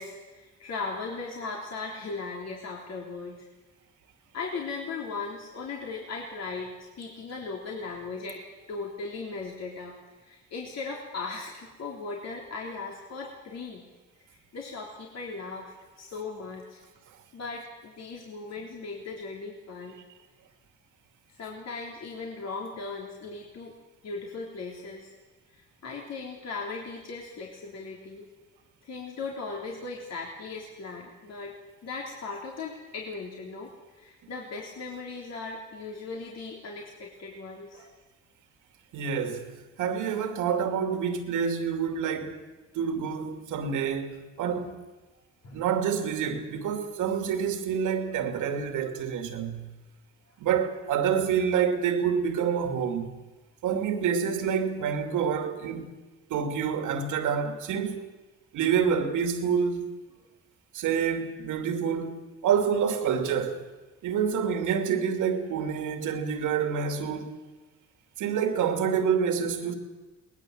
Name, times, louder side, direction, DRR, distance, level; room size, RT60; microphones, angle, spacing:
voice 1, 0.0-3.5 4.3-13.8 14.3-16.8 17.3-20.0 21.3-23.8 24.0-25.1 25.5-28.3 28.8-37.9 45.4-45.6, left 4 dB, 60° left, 3.7 m, -38 dB
voice 2, 38.9-39.5 39.8-42.4 42.7-44.8 45.5-49.7 50.4-53.1 53.6-55.9 56.3-58.0 58.5-59.8 60.7-63.6 64.0-67.3 68.2-69.7, right 7 dB, 85° right, 2.7 m, -27 dB
22.0 x 19.5 x 7.8 m
cardioid pair, 90°, 30 cm